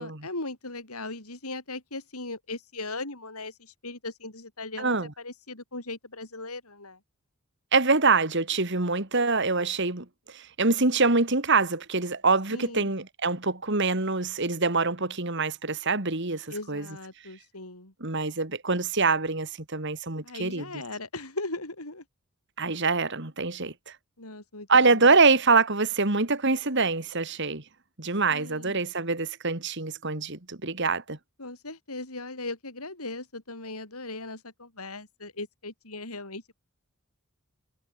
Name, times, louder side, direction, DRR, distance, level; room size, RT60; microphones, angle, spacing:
voice 1, 0.0-7.0 12.5-12.9 16.5-17.9 20.2-22.0 24.2-25.1 28.3-28.8 31.4-36.5, left 2 dB, 85° left, 7.5 m, -38 dB
voice 2, 4.8-5.1 7.7-16.9 18.0-20.7 22.6-24.0 24.7-27.6 28.0-31.2, right 3 dB, 55° right, 2.6 m, -25 dB
head